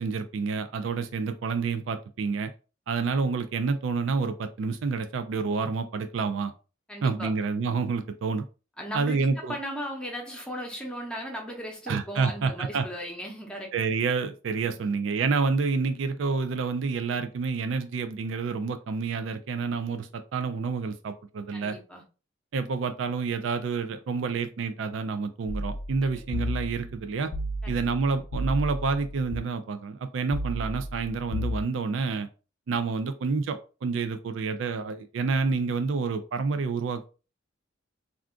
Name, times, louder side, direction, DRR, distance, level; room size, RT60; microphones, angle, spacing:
voice 1, 0.0-2.5 2.9-6.5 7.0-8.4 8.9-9.6 11.9-12.9 13.7-21.8 22.5-27.3 27.7-32.3 32.7-37.1, right 4 dB, 80° right, 9 dB, 0.4 m, -28 dB
voice 2, 6.9-7.3 8.8-13.7 14.8-14.9 21.5-22.0 27.6-27.8, equal, 5° left, 1 dB, 0.7 m, -37 dB
sound 1, 25.5-29.4 30.3-31.6, equal, 60° left, 0.4 m, -33 dB
2.4 x 2.3 x 3.6 m, 0.33 s
head